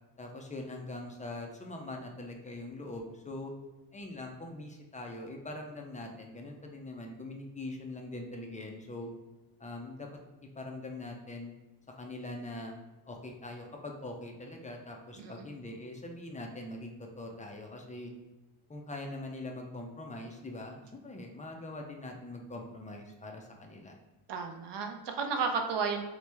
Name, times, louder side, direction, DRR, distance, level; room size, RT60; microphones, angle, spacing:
voice 1, 0.2-3.5 3.9-9.1 9.6-10.1 10.4-11.5 12.0-12.7 13.1-18.1 18.7-23.9, left 2 dB, 15° left, 2 dB, 0.3 m, -42 dB
voice 2, 24.3-26.0, right 5 dB, 55° right, 4 dB, 0.6 m, -33 dB
3.0 x 2.0 x 3.3 m, 1.1 s
cardioid pair, 75°, 50 cm